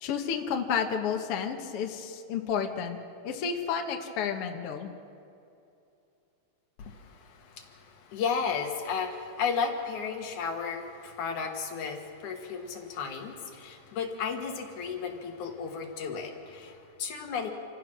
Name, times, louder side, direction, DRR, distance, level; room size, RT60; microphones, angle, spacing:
voice 1, 0.0-3.0 3.2-4.9, left 7 dB, 60° left, 4 dB, 1.9 m, -31 dB
voice 2, 6.8-17.5, left 6 dB, 75° left, 4 dB, 2.9 m, -34 dB
27.0 x 15.5 x 6.1 m, 2.6 s
omnidirectional pair, 3.5 m